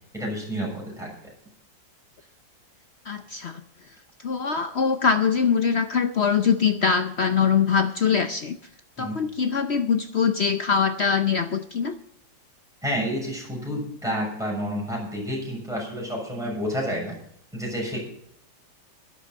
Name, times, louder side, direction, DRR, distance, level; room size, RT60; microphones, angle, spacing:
voice 1, 0.1-1.1 9.0-9.2 12.8-17.2 17.5-18.0, equal, ahead, -2 dB, 6.6 m, -29 dB
voice 2, 3.1-3.6 4.2-8.6 9.0-12.0, left 6 dB, 65° left, 8 dB, 0.6 m, -23 dB
13.0 x 11.5 x 5.4 m, 0.71 s
omnidirectional pair, 2.0 m